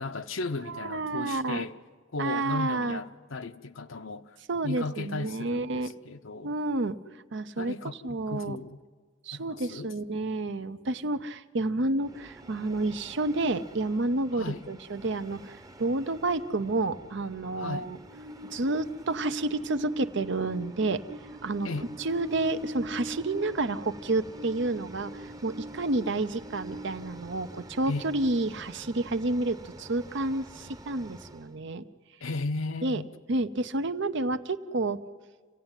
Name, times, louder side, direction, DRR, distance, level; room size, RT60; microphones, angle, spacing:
voice 1, 0.0-1.8 2.1-4.4 4.6-6.5 7.6-8.8 9.3-9.9 14.3-14.7 17.6-17.9 21.6-21.9 27.9-28.1 32.2-33.1, left 3 dB, 75° left, 0.8 m, -35 dB
voice 2, 0.7-1.7 2.2-3.0 4.5-5.9 6.4-7.0 7.3-7.7 8.0-8.6 9.2-18.0 18.5-21.0 21.4-21.7 22.0-31.8 32.8-33.0 33.3-35.0, right 2 dB, 65° right, 0.8 m, -30 dB
Train, 12.0-31.5, right 1 dB, 20° right, 0.9 m, -44 dB
27.0 x 16.0 x 9.1 m
head